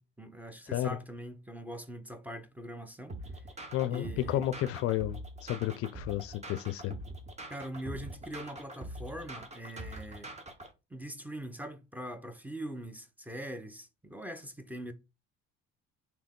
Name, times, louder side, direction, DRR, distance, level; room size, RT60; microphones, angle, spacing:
voice 1, 0.0-3.5 3.9-4.4 7.5-10.3 10.9-14.9, right 1 dB, 5° right, 0.7 m, -42 dB
voice 2, 0.7-1.0 3.7-6.9, left 13 dB, 50° left, 0.4 m, -32 dB
sound 1, 3.1-10.7, right 1 dB, 25° right, 1.1 m, -44 dB
3.6 x 2.9 x 3.6 m
hypercardioid pair, 70°, 29 cm